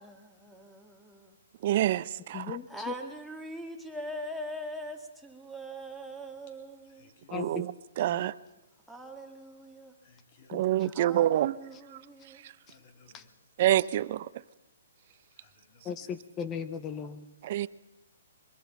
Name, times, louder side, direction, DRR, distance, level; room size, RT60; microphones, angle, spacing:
voice 1, 0.0-1.4 2.7-7.1 8.9-9.9 10.9-12.4, equal, ahead, 2.4 m, -42 dB
voice 2, 1.6-2.6 7.3-8.4 10.5-11.6 11.9-12.0 12.4-12.5 13.6-14.3 17.4-17.7, right 13 dB, 45° right, 0.7 m, -27 dB
voice 3, 2.3-2.9 7.3-7.5 10.5-10.6 13.1-13.2 15.8-17.2, left 7 dB, 20° left, 0.9 m, -37 dB
voice 4, 6.8-7.4 10.0-10.6 12.6-13.3 15.3-16.1, left 4 dB, 40° left, 4.0 m, -61 dB
23.0 x 22.0 x 5.8 m
hypercardioid pair, 150°, 0 cm